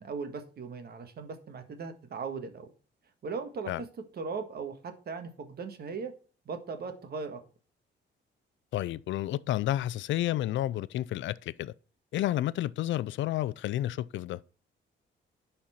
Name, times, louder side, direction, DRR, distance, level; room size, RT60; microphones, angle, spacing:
voice 1, 0.0-2.7 3.2-3.9 4.1-6.1 6.4-7.4, right 5 dB, 50° right, 1.7 m, -38 dB
voice 2, 8.7-11.7 12.1-14.4, left 13 dB, 70° left, 0.5 m, -31 dB
10.5 x 4.4 x 5.7 m
cardioid pair, 90°, 20 cm